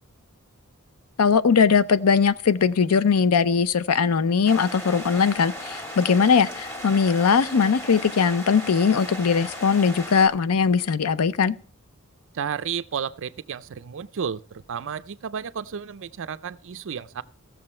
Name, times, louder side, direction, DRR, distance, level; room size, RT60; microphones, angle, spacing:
voice 1, 1.2-11.6, left 6 dB, 90° left, 0.6 m, -20 dB
sound 1, 4.5-10.3, left 1 dB, 15° left, 2.4 m, -36 dB
voice 2, 12.3-14.4 14.7-17.2, right 7 dB, 60° right, 0.5 m, -32 dB
16.0 x 6.7 x 4.3 m
head